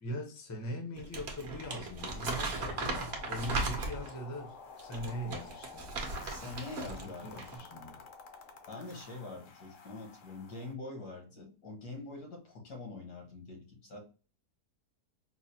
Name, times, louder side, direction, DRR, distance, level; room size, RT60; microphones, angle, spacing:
voice 1, 0.0-5.9 7.0-8.0, equal, 25° left, 0.3 m, -41 dB
Crumpling crinkling, 1.0-4.2 4.8-7.1 7.3-7.6, right 3 dB, 55° right, 0.8 m, -37 dB
sound 1, 2.0-10.7, left 5 dB, 65° left, 0.8 m, -51 dB
voice 2, 6.1-7.5 8.7-14.0, left 3 dB, 85° left, 1.8 m, -44 dB
4.6 x 2.0 x 2.7 m
omnidirectional pair, 1.7 m